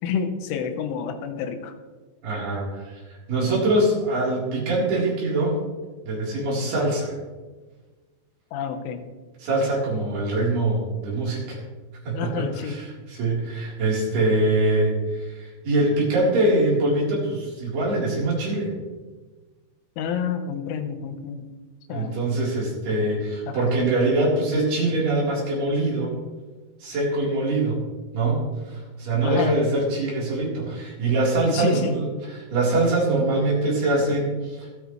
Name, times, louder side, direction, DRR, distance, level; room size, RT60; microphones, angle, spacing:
voice 1, 0.0-1.7 8.5-9.1 12.1-12.8 20.0-21.5 21.9-22.2 23.5-23.8 29.2-29.6 31.4-32.0, left 7 dB, 85° left, 7 dB, 3.5 m, -29 dB
voice 2, 2.2-3.0 3.3-5.6 6.1-7.2 9.4-11.6 12.1-18.7 21.9-26.1 26.8-27.8 28.1-34.7, right 2 dB, 55° right, -5 dB, 5.7 m, -23 dB
25.5 x 9.2 x 3.2 m, 1.3 s
omnidirectional pair, 5.4 m